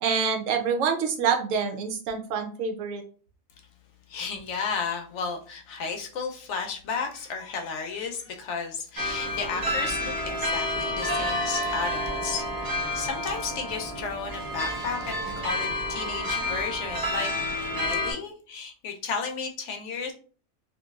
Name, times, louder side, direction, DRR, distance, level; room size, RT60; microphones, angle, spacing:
voice 1, 0.0-3.0, right 6 dB, 80° right, 5 dB, 1.0 m, -26 dB
voice 2, 4.1-20.1, left 5 dB, 70° left, 3 dB, 0.8 m, -33 dB
sound 1, 9.0-18.1, left 1 dB, 25° right, 0.5 m, -30 dB
3.0 x 2.6 x 2.3 m, 0.40 s
omnidirectional pair, 1.4 m